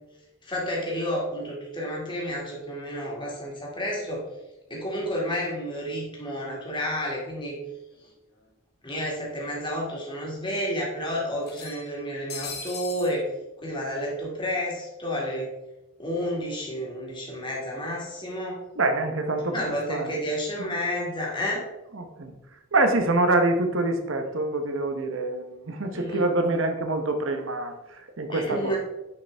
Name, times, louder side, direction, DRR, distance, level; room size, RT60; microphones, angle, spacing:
voice 1, 0.4-4.2 4.7-7.6 8.8-13.2 13.6-15.5 16.0-18.6 19.5-21.6 25.9-26.3 28.3-28.8, equal, 25° left, -3 dB, 2.3 m, -30 dB
sound 1, 8.0-8.1 8.4-8.5 9.6-9.7 10.0-10.1 11.4-13.1, left 5 dB, 50° left, 1.2 m, -39 dB
voice 2, 18.8-20.2 21.9-22.3 22.7-28.8, right 2 dB, 70° right, 6 dB, 1.0 m, -26 dB
10.0 x 5.3 x 3.4 m, 0.99 s
head